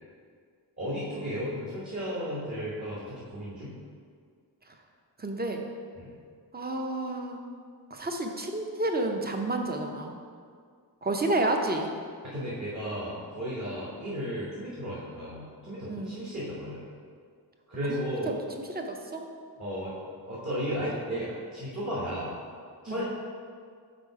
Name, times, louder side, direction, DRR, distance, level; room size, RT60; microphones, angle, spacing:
voice 1, 0.8-3.7 5.9-6.1 12.2-16.8 17.7-18.3 19.6-20.0 20.2-22.3 22.8-23.0, equal, 40° right, -7 dB, 1.4 m, -34 dB
voice 2, 5.2-5.6 6.5-7.4 7.9-10.1 11.0-11.9 15.9-16.2 17.9-18.4 18.7-19.3 22.9-23.0, right 2 dB, 20° right, 3 dB, 0.6 m, -30 dB
5.2 x 4.0 x 4.7 m, 2.1 s
cardioid pair, 50°, 42 cm